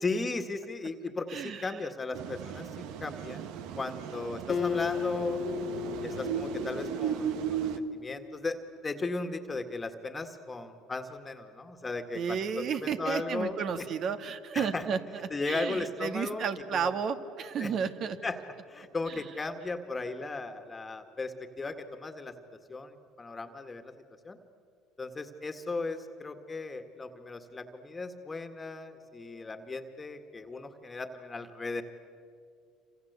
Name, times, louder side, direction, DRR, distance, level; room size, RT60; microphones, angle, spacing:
voice 1, 0.0-5.4 6.0-7.4 7.8-8.6 8.8-13.9 14.5-14.8 15.3-16.9 17.6-17.7 18.2-18.4 18.7-22.3 22.7-23.9 24.3-24.4 25.0-31.8, left 3 dB, 25° left, 7 dB, 1.9 m, -36 dB
voice 2, 1.3-1.7 12.1-18.2 19.1-19.2, right 7 dB, 55° right, 9 dB, 2.0 m, -32 dB
sound 1, 2.1-7.8, right 8 dB, 75° right, 1.4 m, -36 dB
Acoustic guitar, 4.5-8.0, left 8 dB, 40° left, 0.7 m, -35 dB
27.5 x 26.5 x 8.2 m, 2.4 s
supercardioid pair, 80°, 0 cm